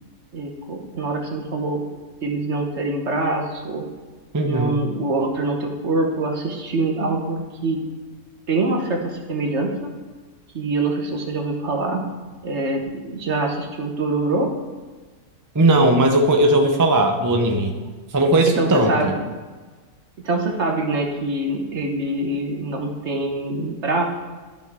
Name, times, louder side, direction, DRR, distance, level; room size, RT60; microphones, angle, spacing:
voice 1, 0.3-1.8 2.2-3.8 4.4-7.8 8.5-9.9 10.5-12.1 12.4-14.5 18.5-19.2 20.2-24.0, right 2 dB, 50° right, 1 dB, 1.5 m, -24 dB
voice 2, 4.3-4.8 15.5-17.8 18.1-19.1, right 1 dB, 25° right, 3 dB, 0.4 m, -18 dB
12.5 x 6.2 x 3.6 m, 1.4 s
omnidirectional pair, 1.6 m